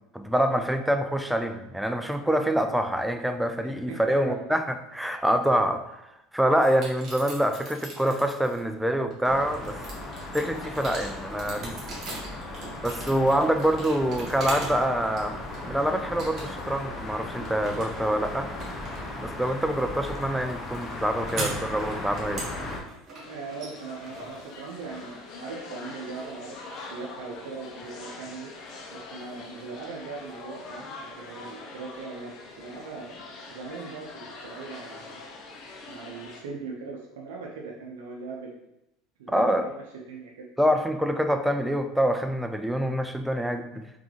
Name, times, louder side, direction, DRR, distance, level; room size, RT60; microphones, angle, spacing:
voice 1, 0.1-6.0 6.3-9.8 10.3-11.8 12.8-15.4 15.6-18.5 19.2-22.5 39.3-39.7 40.6-43.8, equal, 5° right, 7 dB, 0.4 m, -26 dB
voice 2, 3.6-4.5 23.3-28.5 28.9-33.1 33.5-35.3 35.9-38.7 39.2-40.4, right 4 dB, 85° right, -1 dB, 0.6 m, -40 dB
sound 1, 6.6-8.6 9.1-14.8 15.2-15.8 16.2-16.8 17.1-25.0, right 2 dB, 40° right, 1.5 m, -40 dB
sound 2, 9.2-22.8, left 2 dB, 25° left, 0.9 m, -37 dB
sound 3, 23.2-36.4, left 3 dB, 55° left, 0.8 m, -43 dB
3.7 x 3.7 x 3.2 m, 0.85 s
supercardioid pair, 100°, 0 cm